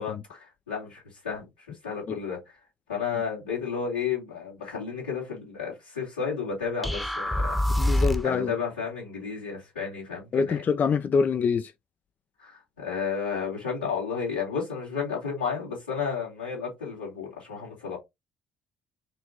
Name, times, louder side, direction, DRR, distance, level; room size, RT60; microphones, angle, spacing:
voice 1, 0.0-1.5 1.8-2.4 2.9-10.6 12.4-18.0, left 6 dB, 85° left, 2.6 m, -32 dB
sound 1, 6.8-8.4, left 1 dB, ahead, 0.8 m, -25 dB
voice 2, 7.8-8.5 10.3-11.7, left 5 dB, 35° left, 0.3 m, -25 dB
5.3 x 2.6 x 2.9 m
figure-of-eight pair, 50°, 5 cm